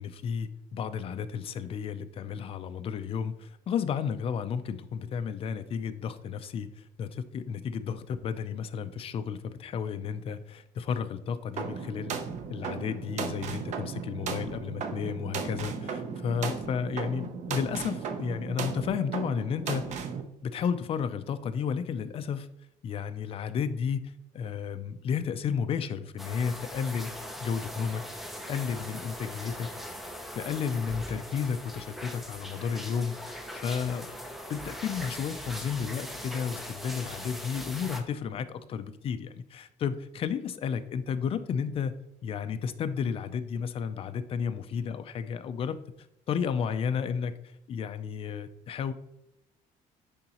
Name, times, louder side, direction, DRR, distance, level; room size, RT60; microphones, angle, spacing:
voice 1, 0.0-12.2 12.5-19.9 20.4-22.5 22.8-27.1 27.4-28.0 28.5-29.7 30.3-34.1 34.5-41.9 42.2-45.8 46.3-47.3 47.7-48.9, left 7 dB, 40° left, 10 dB, 0.4 m, -32 dB
sound 1, 11.6-20.2, right 6 dB, 50° right, 0.7 m, -36 dB
sound 2, 26.2-38.0, equal, ahead, 0.6 m, -40 dB
10.0 x 3.9 x 2.9 m, 0.82 s
cardioid pair, 155°, 15 cm